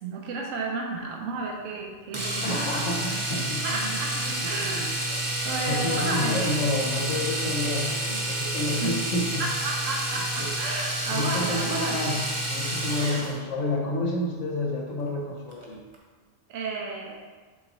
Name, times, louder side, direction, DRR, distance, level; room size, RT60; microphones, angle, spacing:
voice 1, 0.0-2.9 3.6-5.0 5.4-6.6 8.8-9.1 9.4-12.2 13.1-13.2 16.5-17.2, right 3 dB, 80° right, -1 dB, 1.1 m, -32 dB
Domestic sounds home sounds, 2.1-13.4 15.5-15.6 15.9-16.0, right 1 dB, 25° right, 0.9 m, -29 dB
voice 2, 2.4-3.9 4.3-4.4 4.7-5.2 5.7-9.5 10.4-10.5 11.1-12.2 12.5-15.8, left 2 dB, 80° left, -1 dB, 1.4 m, -29 dB
7.9 x 3.9 x 3.0 m, 1.4 s
omnidirectional pair, 1.3 m